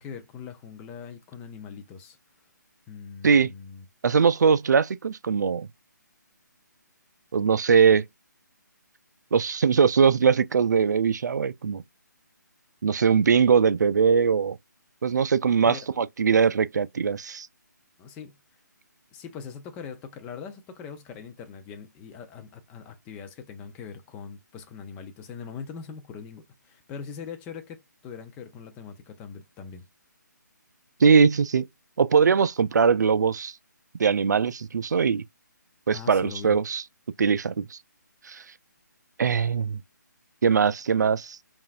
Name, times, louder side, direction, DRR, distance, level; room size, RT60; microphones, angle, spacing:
voice 1, 0.0-2.2 2.9-3.8 12.9-13.1 15.6-15.9 18.0-18.4 19.1-29.9 35.9-36.6, left 6 dB, 10° left, 0.5 m, -41 dB
voice 2, 4.0-5.7 7.3-8.0 9.3-11.8 12.8-14.6 15.0-17.5 31.0-31.7 32.0-33.5 34.0-35.2 35.9-36.8 37.2-37.8 38.3-38.4 39.2-39.8 40.4-41.4, right 6 dB, 65° right, 0.4 m, -21 dB
5.5 x 2.5 x 2.4 m
hypercardioid pair, 155°, 10 cm